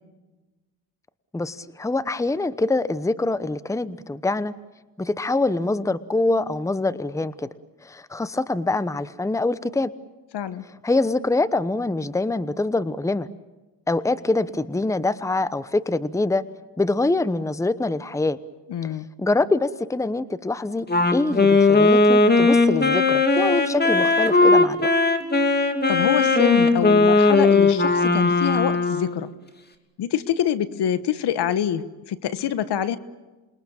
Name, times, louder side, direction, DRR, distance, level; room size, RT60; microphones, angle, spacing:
voice 1, 1.3-4.5 5.0-7.5 7.8-9.9 10.8-13.3 13.9-16.4 16.8-18.4 18.8-20.9 21.1-24.9, left 2 dB, 5° left, 15 dB, 0.9 m, -24 dB
voice 2, 10.3-10.6 18.7-19.1 25.9-29.3 30.0-33.0, left 10 dB, 70° left, 14 dB, 1.4 m, -25 dB
Wind instrument woodwind instrument, 20.9-29.2, left 3 dB, 25° left, 2.7 m, -18 dB
28.0 x 22.0 x 7.3 m, 1.2 s
cardioid pair, 80°, 42 cm